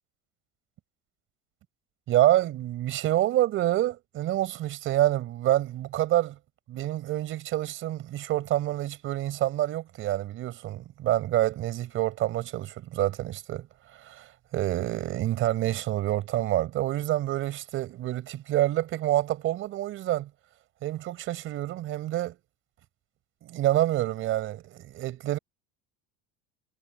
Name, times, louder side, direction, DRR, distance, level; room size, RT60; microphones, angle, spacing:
voice 1, 2.1-6.4 6.7-13.7 13.9-20.3 20.8-22.4 23.4-25.4, right 14 dB, 40° right, 4.9 m, -27 dB
cardioid pair, 180°, 31 cm